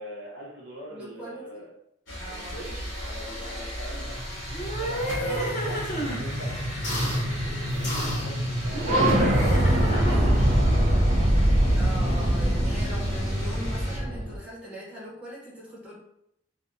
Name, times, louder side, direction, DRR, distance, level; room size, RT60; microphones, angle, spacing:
voice 1, 0.0-1.7 2.3-4.2 4.7-10.7, equal, 65° right, -4 dB, 0.8 m, -43 dB
voice 2, 0.9-1.6 2.1-2.5 5.1-5.5 10.1-10.9 11.7-15.9, equal, 5° right, -7 dB, 0.9 m, -40 dB
sound 1, 2.1-14.0, equal, 75° left, 1.2 m, -37 dB
sound 2, 4.2-14.4, equal, 35° right, 0.4 m, -24 dB
sound 3, 4.5-6.2 6.8-7.2 7.8-8.3 8.7-10.5, right 1 dB, 40° left, 0.6 m, -30 dB
2.7 x 2.2 x 2.5 m, 0.78 s
head